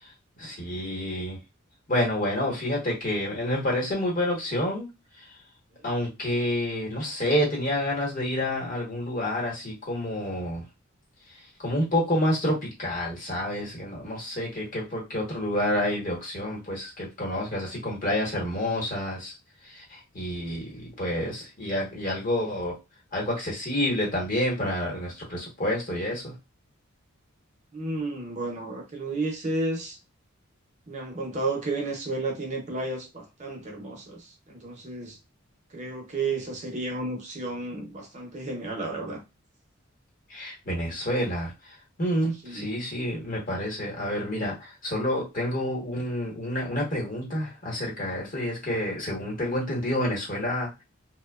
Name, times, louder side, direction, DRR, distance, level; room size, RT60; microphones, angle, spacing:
voice 1, 0.4-1.4 1.9-4.9 5.8-10.6 11.6-19.3 19.7-22.7 23.1-26.3 40.3-41.5 42.0-44.5 44.8-50.7, left 1 dB, 40° left, 1.0 m, -28 dB
voice 2, 27.7-30.0 30.9-35.2 35.7-39.2 42.4-42.7, right 2 dB, 35° right, 0.6 m, -32 dB
2.7 x 2.1 x 2.2 m
head